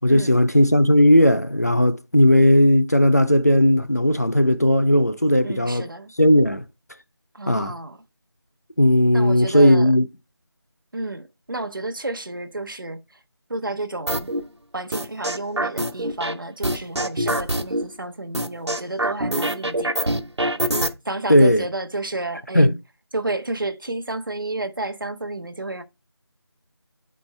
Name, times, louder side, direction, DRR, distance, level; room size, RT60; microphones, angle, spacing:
voice 1, 0.0-5.9 6.2-6.6 7.5-7.7 8.8-10.1 21.3-21.7 22.5-22.7, left 1 dB, 40° left, 0.4 m, -16 dB
voice 2, 5.4-6.1 7.3-8.0 9.1-9.9 10.9-13.0 13.5-14.3 14.7-20.2 21.0-22.7 23.1-25.8, right 2 dB, 50° right, 0.9 m, -31 dB
sound 1, 14.1-14.4 14.9-16.3 16.6-17.8 18.3-20.9, right 1 dB, 85° right, 1.2 m, -24 dB
8.8 x 4.3 x 3.2 m
figure-of-eight pair, 175°, 14 cm